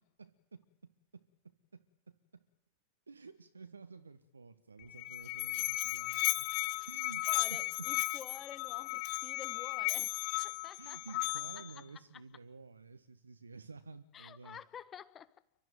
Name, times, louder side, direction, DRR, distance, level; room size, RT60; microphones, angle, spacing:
voice 1, 0.2-2.4 3.1-6.5 6.8-7.9 10.8-14.6, right 4 dB, 75° right, 1.2 m, -52 dB
Musical instrument, 4.8-11.8, left 24 dB, 45° left, 0.8 m, -35 dB
voice 2, 7.3-10.2 10.4-11.2 11.7-11.8 14.1-15.4, left 8 dB, 25° left, 1.5 m, -50 dB
30.0 x 14.0 x 9.4 m
figure-of-eight pair, 90°, 0 cm